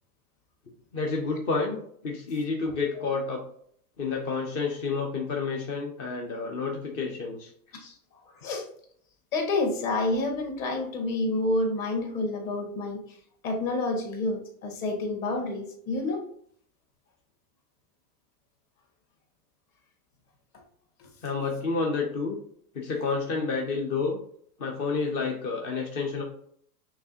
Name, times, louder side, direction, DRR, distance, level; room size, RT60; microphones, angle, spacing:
voice 1, 0.9-3.4 4.0-7.5 7.8-8.0 21.2-22.4 22.7-24.2 24.6-26.2, left 4 dB, 20° left, 1 dB, 0.3 m, -29 dB
voice 2, 9.3-13.0 13.4-16.3 21.0-21.1, left 2 dB, 40° left, 2 dB, 1.6 m, -28 dB
5.9 x 3.3 x 2.7 m, 0.63 s
hypercardioid pair, 125°, 47 cm